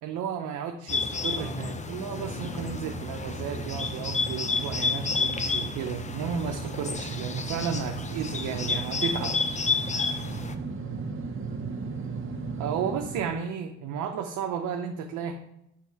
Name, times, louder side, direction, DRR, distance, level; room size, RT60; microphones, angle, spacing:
voice 1, 0.0-9.3 12.6-15.3, right 7 dB, 85° right, 3 dB, 0.6 m, -33 dB
Bird, 0.9-10.5, left 4 dB, 25° left, 0.5 m, -31 dB
sound 1, 2.1-13.3, right 4 dB, 45° right, 0.8 m, -36 dB
6.0 x 3.5 x 4.7 m, 0.81 s
cardioid pair, 90°, 30 cm